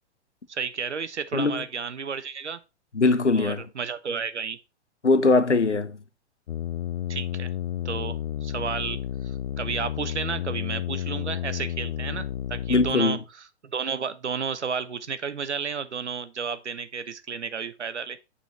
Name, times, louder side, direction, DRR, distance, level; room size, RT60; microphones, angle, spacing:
voice 1, 0.5-2.6 3.4-4.6 7.1-7.5 7.8-13.2 13.6-18.2, right 6 dB, 80° right, 1.0 m, -32 dB
voice 2, 1.3-1.6 2.9-3.6 5.0-6.0 12.7-13.2, left 3 dB, 85° left, 0.9 m, -21 dB
sound 1, 6.5-12.9, left 11 dB, 50° left, 0.4 m, -31 dB
7.0 x 5.6 x 4.3 m
figure-of-eight pair, 105°, 35 cm